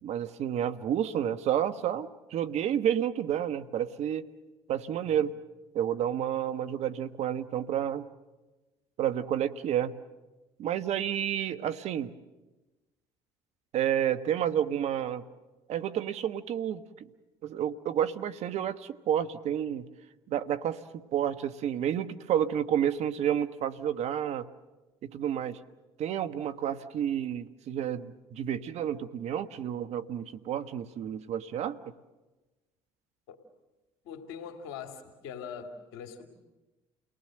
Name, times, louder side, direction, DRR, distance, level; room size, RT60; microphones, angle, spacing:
voice 1, 0.0-4.3 4.7-5.3 5.7-8.1 9.0-9.9 10.6-12.1 13.7-15.2 15.7-17.1 17.4-19.8 20.3-20.8 21.1-24.5 25.0-25.6 26.0-31.8, right 10 dB, 60° right, 1.3 m, -30 dB
voice 2, 34.0-36.3, left 7 dB, 80° left, 2.8 m, -42 dB
30.0 x 19.0 x 7.8 m
hypercardioid pair, 70°, 13 cm